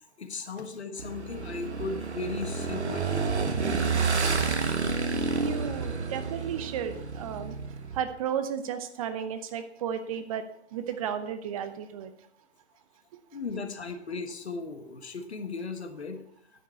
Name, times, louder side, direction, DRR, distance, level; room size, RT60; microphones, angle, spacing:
voice 1, 0.2-3.6 4.9-5.0 13.3-16.2, left 4 dB, 70° left, 7 dB, 1.5 m, -37 dB
Motorcycle / Engine, 1.0-8.0, right 4 dB, 75° right, 1.3 m, -30 dB
voice 2, 5.4-7.5 7.9-10.4 10.7-12.1, right 8 dB, 30° right, 10 dB, 0.7 m, -33 dB
10.0 x 7.3 x 4.4 m, 0.69 s
figure-of-eight pair, 120°, 34 cm